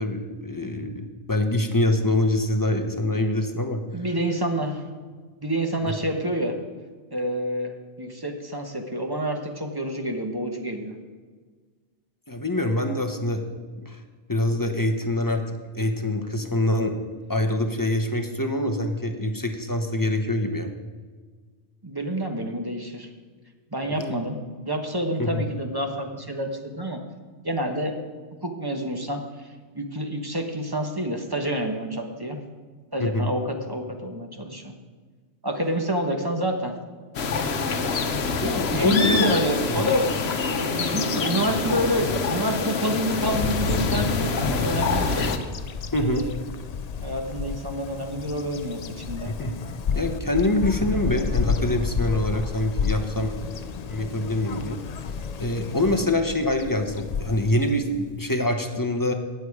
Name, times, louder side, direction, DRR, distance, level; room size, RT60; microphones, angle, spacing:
voice 1, 0.0-3.8 5.8-5.9 12.3-13.4 13.8-14.0 14.3-17.0 17.3-20.7 24.0-24.2 25.2-25.4 33.0-33.3 38.4-39.2 45.9-46.3 49.2-49.5 49.9-53.3 53.9-54.8 55.4-59.1, left 1 dB, 20° left, 6 dB, 0.8 m, -25 dB
voice 2, 3.9-4.8 5.4-6.6 7.1-10.9 21.8-23.1 23.7-24.4 24.7-27.0 27.4-27.9 28.4-29.5 29.7-32.4 32.9-34.7 35.4-36.7 38.7-40.1 40.5-45.4 46.0-46.3 47.0-49.3, right 1 dB, 20° right, 4 dB, 1.1 m, -28 dB
sound 1, 37.1-45.4, left 4 dB, 65° left, 1.1 m, -25 dB
Bird vocalization bird call bird song, 44.9-58.2, left 6 dB, 50° left, 0.5 m, -31 dB
18.0 x 6.8 x 4.8 m, 1.5 s
omnidirectional pair, 1.2 m